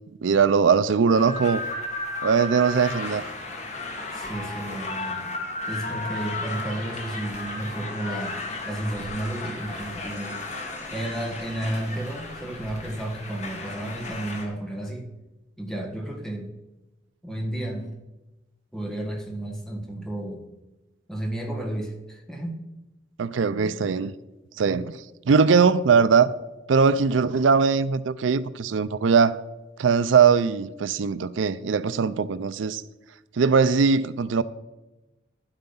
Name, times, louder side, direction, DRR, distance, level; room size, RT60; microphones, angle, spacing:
voice 1, 0.2-1.6 2.2-3.3 23.2-24.1 24.6-25.0 25.3-26.3 26.7-29.4 29.8-32.8 33.4-34.4, right 5 dB, 90° right, 0.4 m, -20 dB
sound 1, 1.1-14.4, left 2 dB, 40° left, 1.8 m, -34 dB
voice 2, 4.1-5.3 5.7-8.4 8.6-10.4 10.9-15.1 15.6-16.5 17.2-17.9 18.7-20.5 21.1-22.6, right 1 dB, 5° left, 1.5 m, -32 dB
11.0 x 8.0 x 5.5 m
head